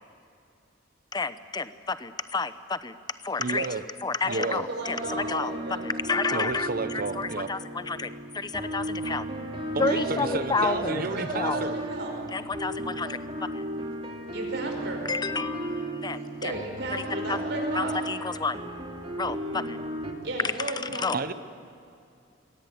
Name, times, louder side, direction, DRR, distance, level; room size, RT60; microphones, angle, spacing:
voice 1, 1.1-2.9 3.2-3.7 4.0-5.5 5.8-9.3 9.8-11.7 12.3-12.7 13.0-13.1 15.1-16.5 16.9-17.0 17.3-17.4 17.7-18.6 19.2-19.8 20.9-21.3, left 4 dB, 20° left, 12 dB, 0.8 m, -30 dB
voice 2, 3.4-3.8 4.3-4.6 6.3-7.5 9.7-11.8 21.1-21.3, right 3 dB, 50° right, 12 dB, 0.9 m, -31 dB
voice 3, 4.2-5.8 9.9-12.1 14.3-15.0 16.4-18.0 20.2-21.3, right 2 dB, 65° right, 2 dB, 5.0 m, -34 dB
sound 1, 4.8-20.1, right 1 dB, 30° right, 2.5 m, -35 dB
23.0 x 17.5 x 9.2 m, 2.5 s
head